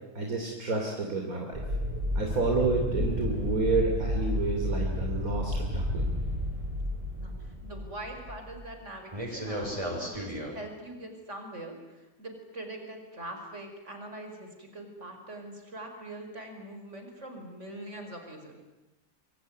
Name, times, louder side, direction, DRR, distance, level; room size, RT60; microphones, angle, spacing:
voice 1, 0.2-1.6 2.1-6.0, right 3 dB, 70° right, 1 dB, 3.5 m, -29 dB
sound 1, 1.5-8.8 9.1-10.5, left 1 dB, 20° right, 6.3 m, -32 dB
voice 2, 7.2-18.6, right 1 dB, 50° right, 5 dB, 5.4 m, -43 dB
26.0 x 23.5 x 9.5 m, 1.0 s
omnidirectional pair, 1.6 m